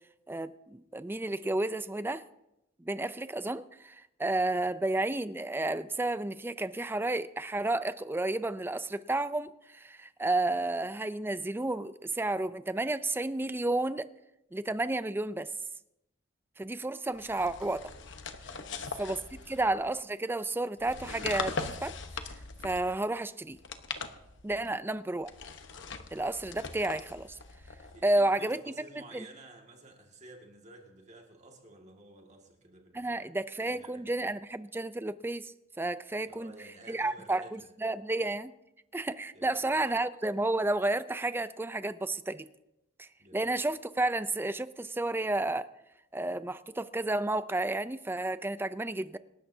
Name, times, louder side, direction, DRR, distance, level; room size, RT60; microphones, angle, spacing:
voice 1, 0.3-2.2 2.8-14.1 14.5-15.5 16.6-17.9 19.0-19.2 19.5-21.9 22.6-23.6 24.4-25.3 26.1-27.4 28.0-28.6 28.9-29.3 32.9-36.5 36.9-38.5 38.9-42.5 43.0-45.7 46.1-49.2, right 2 dB, 10° right, 0.4 m, -31 dB
sound 1, 17.2-19.9 20.8-23.0 23.5-24.7 25.2-28.1, left 4 dB, 65° left, 1.1 m, -41 dB
voice 2, 18.4-19.5 24.4-24.9 27.9-33.2 33.6-34.3 36.2-37.7 39.3-39.7 43.2-43.5, right 2 dB, 35° right, 2.0 m, -53 dB
26.5 x 13.0 x 2.8 m
head